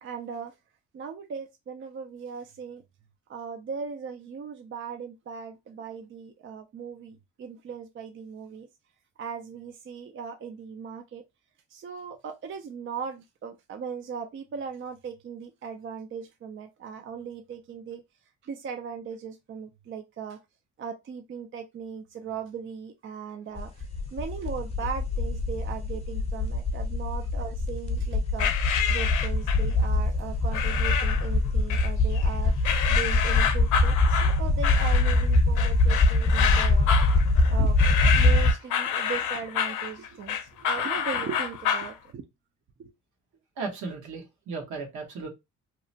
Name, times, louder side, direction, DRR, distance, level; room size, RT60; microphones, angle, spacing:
voice 1, 0.0-0.5 0.9-2.8 3.3-8.7 9.2-11.2 11.7-18.0 18.4-20.4 20.8-23.8 24.1-28.5 28.9-32.5 32.9-36.9 37.5-42.2 42.8-42.9, right 6 dB, 40° right, 0.4 m, -38 dB
sound 1, 23.6-38.5, left 2 dB, 20° left, 0.7 m, -23 dB
sound 2, 28.4-29.7 30.5-31.3 31.7-32.3 32.6-41.9, left 8 dB, 75° left, 0.6 m, -28 dB
voice 2, 43.6-45.3, right 4 dB, 75° right, 1.2 m, -35 dB
2.9 x 2.1 x 2.7 m
cardioid pair, 90°, 30 cm